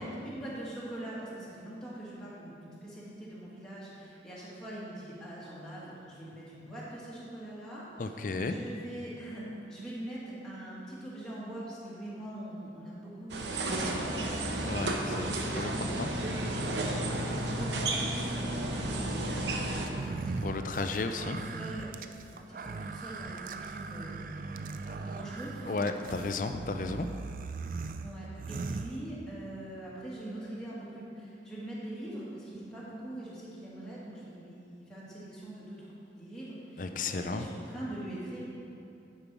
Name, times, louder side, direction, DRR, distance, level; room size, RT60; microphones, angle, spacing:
voice 1, 0.0-7.9 8.4-16.5 16.7-20.6 21.0-21.9 22.3-24.3 24.6-26.2 28.0-35.8 36.1-38.4, right 1 dB, 5° left, -9 dB, 1.8 m, -43 dB
voice 2, 8.0-8.6 14.6-16.1 20.4-21.4 25.7-27.1 36.8-37.5, left 3 dB, 45° left, 7 dB, 0.4 m, -34 dB
sound 1, 13.3-19.9, right 1 dB, 85° right, 0.9 m, -32 dB
sound 2, 19.9-29.5, right 4 dB, 50° right, 0.3 m, -40 dB
10.5 x 5.4 x 4.7 m, 2.7 s
head